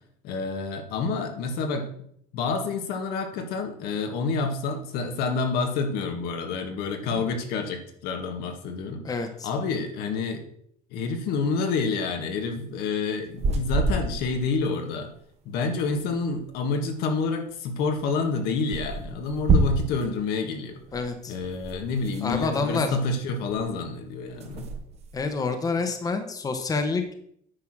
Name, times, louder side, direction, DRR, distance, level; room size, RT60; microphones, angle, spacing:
voice 1, 0.2-1.9 2.3-9.2 9.4-10.4 10.9-15.1 15.4-20.8 21.3-24.7, left 4 dB, 75° left, 5 dB, 1.7 m, -28 dB
voice 2, 9.0-9.5 20.9-21.3 22.2-23.0 25.1-27.1, left 4 dB, 20° left, 7 dB, 1.1 m, -28 dB
sound 1, 13.2-14.6 14.9-15.0 15.1-15.2 15.4-16.6 17.5-17.6 17.9-18.0 18.7-20.1 20.9-23.2 23.5-23.9 24.2-25.4, right 3 dB, 40° right, 1.3 m, -29 dB
9.7 x 4.8 x 6.1 m, 0.67 s
cardioid pair, 130°, 16 cm